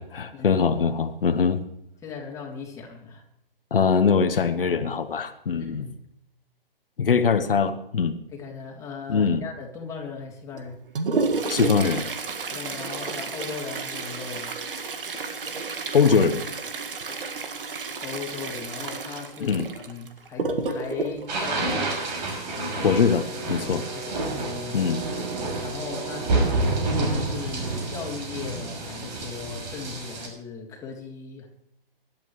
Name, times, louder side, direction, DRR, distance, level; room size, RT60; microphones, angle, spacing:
voice 1, 0.0-1.6 3.7-5.9 7.0-8.2 9.1-9.4 11.5-12.0 15.9-16.4 19.4-19.7 22.8-23.8 24.7-25.0, left 6 dB, 65° left, 7 dB, 1.3 m, -22 dB
voice 2, 2.0-3.2 5.6-6.0 8.3-10.7 12.5-14.5 18.0-21.9 23.9-24.8 25.6-31.5, left 5 dB, 10° left, -1 dB, 3.2 m, -38 dB
Toilet flush, 10.5-22.5 24.4-24.5 24.8-24.9 25.7-25.8 26.5-26.7 27.2-27.3, right 4 dB, 65° right, 2.0 m, -31 dB
sound 1, 21.3-30.3, right 2 dB, 45° right, 6.0 m, -29 dB
Brass instrument, 22.8-27.0, right 3 dB, 25° right, 1.4 m, -39 dB
24.0 x 12.0 x 3.2 m, 0.76 s
figure-of-eight pair, 135°, 29 cm